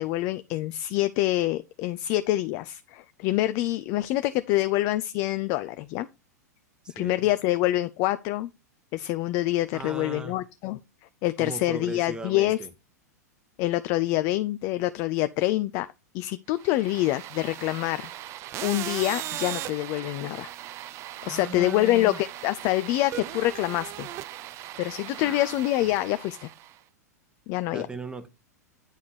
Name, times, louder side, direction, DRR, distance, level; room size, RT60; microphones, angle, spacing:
voice 1, 0.0-6.1 7.0-8.5 8.9-10.8 11.2-12.6 13.6-15.9 16.1-18.1 18.6-20.5 21.2-24.1 24.8-26.5 27.5-27.9, left 16 dB, 35° left, 0.3 m, -26 dB
voice 2, 6.8-7.3 9.7-10.4 11.4-12.7 21.2-22.2 25.2-25.5 27.7-28.3, right 3 dB, 10° right, 0.9 m, -38 dB
sound 1, 16.6-26.8, right 13 dB, 30° right, 0.4 m, -38 dB
8.9 x 3.5 x 4.3 m
figure-of-eight pair, 95°, 9 cm